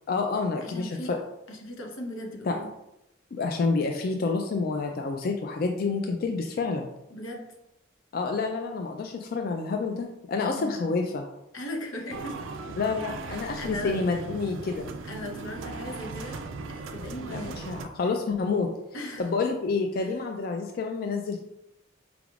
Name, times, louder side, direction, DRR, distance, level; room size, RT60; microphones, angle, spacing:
voice 1, 0.1-1.2 2.5-2.6 3.3-6.9 8.1-11.3 12.8-14.9 17.2-18.7 19.2-21.4, left 4 dB, 50° left, 3 dB, 0.3 m, -28 dB
voice 2, 0.6-1.1 1.5-2.7 7.1-7.5 10.4-10.9 11.5-12.4 13.3-13.9 15.0-16.4 16.7-17.6 18.9-19.3 20.0-20.2, left 1 dB, 90° left, 1 dB, 0.8 m, -38 dB
sound 1, 12.1-17.9, right 3 dB, 75° right, 0.4 m, -38 dB
4.8 x 3.4 x 2.4 m, 0.85 s
head